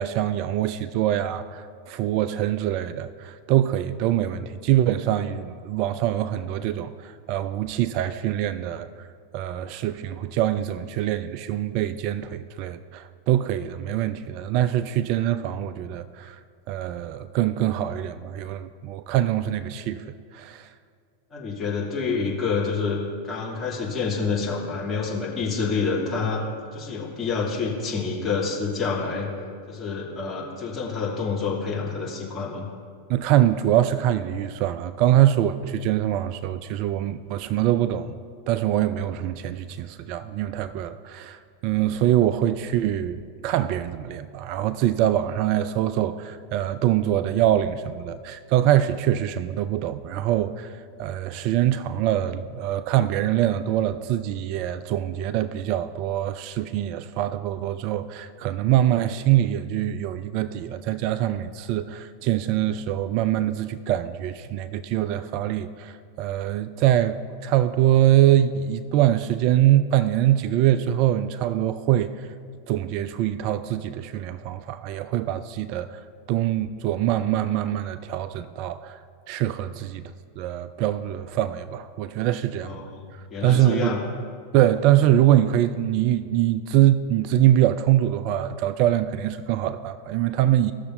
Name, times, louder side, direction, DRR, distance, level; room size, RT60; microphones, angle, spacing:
voice 1, 0.0-9.1 9.3-16.4 16.7-20.7 33.1-38.1 38.5-50.7 51.0-72.3 72.7-76.0 76.3-79.0 79.3-80.0 80.4-82.8 83.4-84.0 84.5-90.7, right 12 dB, 45° right, 13 dB, 0.3 m, -24 dB
voice 2, 21.3-26.4 26.7-29.3 29.7-32.7 82.6-84.1, left 4 dB, 20° left, -6 dB, 2.6 m, -28 dB
17.0 x 6.6 x 2.6 m, 2.2 s
figure-of-eight pair, 90°, 0 cm